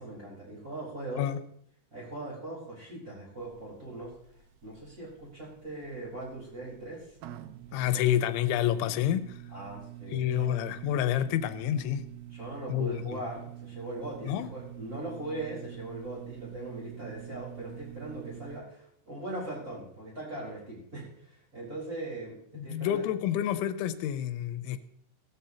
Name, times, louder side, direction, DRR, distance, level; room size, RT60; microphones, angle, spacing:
voice 1, 0.0-1.2 1.9-4.1 4.6-7.2 7.7-8.0 9.5-10.5 12.3-22.4 22.6-23.0, right 2 dB, 20° right, -5 dB, 4.4 m, -40 dB
sound 1, 3.4-18.6, right 13 dB, 80° right, 2.3 m, -47 dB
voice 2, 7.7-9.4 10.1-12.0 12.7-13.2 14.2-14.5 22.5-24.8, left 11 dB, 90° left, 11 dB, 3.1 m, -28 dB
17.5 x 13.5 x 2.9 m, 0.69 s
omnidirectional pair, 5.3 m